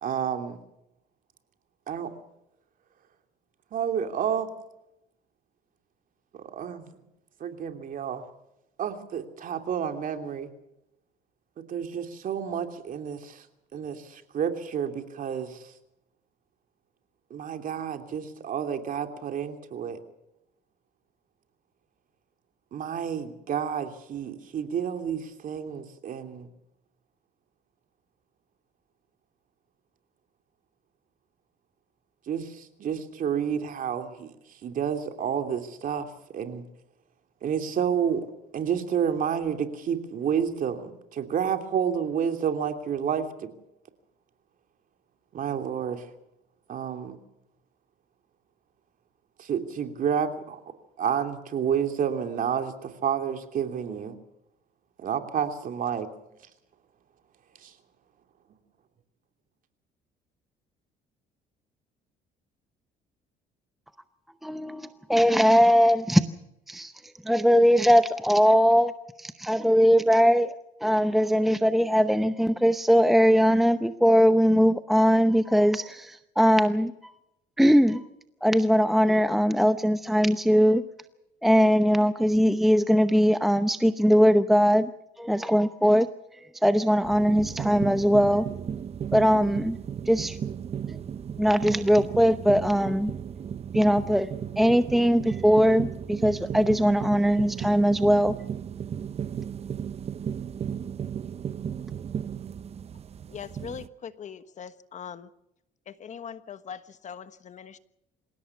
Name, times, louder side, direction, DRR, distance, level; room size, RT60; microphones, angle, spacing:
voice 1, 0.0-0.6 1.9-2.1 3.7-4.5 6.5-6.9 7.4-8.2 8.8-10.5 11.7-13.4 13.7-15.6 17.3-20.0 22.7-26.5 32.3-34.3 34.6-36.1 36.3-36.6 37.4-38.3 38.5-43.5 45.3-46.0 46.7-47.2 49.4-50.6 51.0-54.1 55.0-56.1 57.6-57.7, right 8 dB, 55° right, 6 dB, 3.0 m, -30 dB
voice 2, 64.4-66.2 66.7-66.9 67.2-68.9 69.2-77.1 77.6-78.1 78.4-80.8 81.4-84.9 85.2-86.1 86.6-88.5 89.1-89.8 90.1-90.4 90.9-91.0 91.4-93.1 93.7-94.3 94.6-98.3, equal, ahead, 10 dB, 0.8 m, -21 dB
sound 1, 87.0-103.9, right 8 dB, 35° right, 0.7 m, -35 dB
voice 3, 103.3-105.3 105.9-107.8, left 7 dB, 45° left, 12 dB, 1.3 m, -41 dB
27.0 x 17.0 x 6.1 m, 0.86 s
cardioid pair, 110°, 17 cm